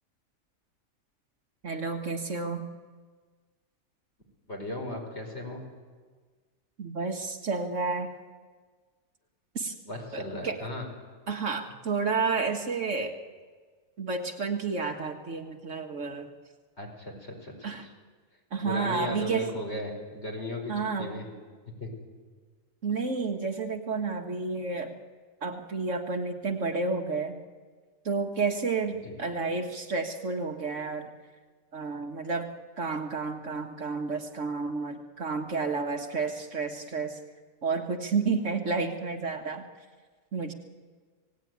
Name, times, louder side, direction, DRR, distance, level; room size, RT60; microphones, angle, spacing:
voice 1, 1.6-2.6 6.8-8.1 9.6-9.7 10.1-10.6 11.3-13.2 14.0-16.3 17.6-17.9 18.5-19.5 20.7-21.2 22.8-24.9 25.4-27.4 28.1-31.1 31.7-32.5 32.8-37.2 37.6-39.6 40.3-40.5, right 4 dB, 60° right, 4 dB, 1.9 m, -31 dB
voice 2, 4.5-5.6 9.9-10.8 16.8-17.7 18.6-21.3 21.8-21.9 28.9-29.2, left 1 dB, 45° left, 1 dB, 5.4 m, -36 dB
26.5 x 18.0 x 9.4 m, 1.5 s
omnidirectional pair, 1.5 m